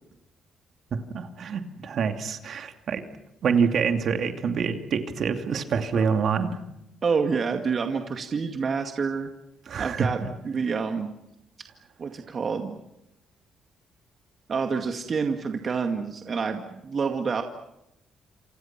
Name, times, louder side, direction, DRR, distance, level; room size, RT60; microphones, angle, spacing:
voice 1, 1.1-3.0 3.4-6.6 9.7-10.3, right 6 dB, 60° right, 5 dB, 2.7 m, -26 dB
voice 2, 7.0-9.3 9.8-11.1 12.0-12.8 14.5-17.4, right 5 dB, 45° right, 4 dB, 2.1 m, -28 dB
28.0 x 27.0 x 6.1 m, 0.86 s
cardioid pair, 90°, 0 cm